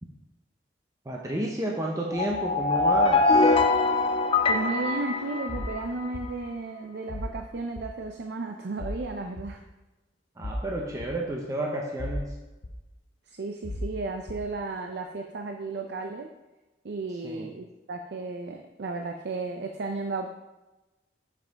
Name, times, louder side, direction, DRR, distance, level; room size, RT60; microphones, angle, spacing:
voice 1, 1.1-3.6 10.4-12.3 17.2-17.5, right 1 dB, 20° right, -1 dB, 0.7 m, -31 dB
sound 1, 2.1-6.1, left 3 dB, 30° left, 0.5 m, -23 dB
voice 2, 4.5-9.6 13.3-16.3 16.8-20.3, right 3 dB, 65° right, 4 dB, 0.5 m, -34 dB
sound 2, 5.5-5.7 6.1-6.3 7.1-7.3 7.8-7.9 8.8-9.0 9.4-9.5 10.4-10.6 11.0-11.1 12.0-12.3 12.6-12.7 13.6-13.9 14.3-14.4, left 1 dB, 80° left, 0.9 m, -34 dB
7.3 x 5.5 x 4.0 m, 1.1 s
head